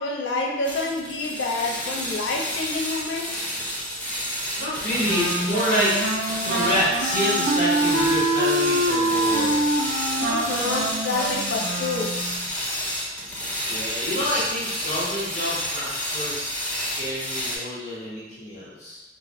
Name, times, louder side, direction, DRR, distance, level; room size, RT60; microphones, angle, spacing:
voice 1, 0.0-3.5 10.2-12.2, left 3 dB, 75° left, -1 dB, 0.4 m, -28 dB
sound 1, 0.6-17.6, equal, 10° left, 0.5 m, -30 dB
voice 2, 4.6-6.0 6.4-9.8 13.6-19.0, equal, 40° left, -9 dB, 0.9 m, -28 dB
Wind instrument woodwind instrument, 5.0-12.4, right 1 dB, 70° right, 0.4 m, -25 dB
2.5 x 2.0 x 3.3 m, 1.1 s
head